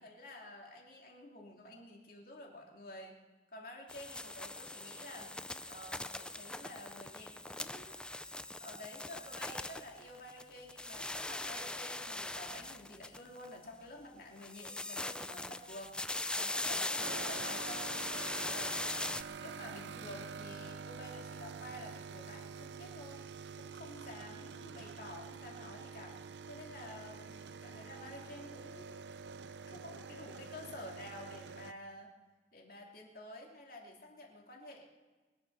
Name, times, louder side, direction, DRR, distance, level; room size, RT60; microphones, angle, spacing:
voice 1, 0.0-3.2 3.5-5.3 5.7-8.0 8.6-19.0 19.4-23.2 23.6-26.2 26.5-29.0 29.7-32.1 32.5-35.0, left 1 dB, 55° left, 0 dB, 2.9 m, -50 dB
sound 1, 3.9-10.4 10.7-13.5 14.4-19.2, left 2 dB, 5° left, 0.4 m, -40 dB
sound 2, 17.0-31.7, right 5 dB, 85° right, 0.5 m, -47 dB
23.0 x 8.8 x 6.6 m, 1.3 s
head